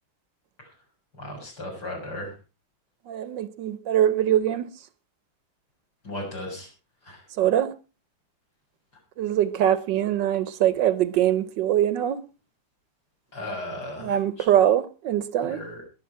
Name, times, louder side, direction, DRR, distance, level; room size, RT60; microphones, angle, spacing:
voice 1, 1.2-2.3 6.0-6.7 7.0-7.2 13.3-14.5 15.4-15.8, left 1 dB, 55° left, 7.5 m, -36 dB
voice 2, 3.1-4.7 7.4-7.7 9.2-12.2 14.0-15.6, right 11 dB, 75° right, 1.5 m, -23 dB
21.5 x 7.7 x 4.6 m
omnidirectional pair, 2.1 m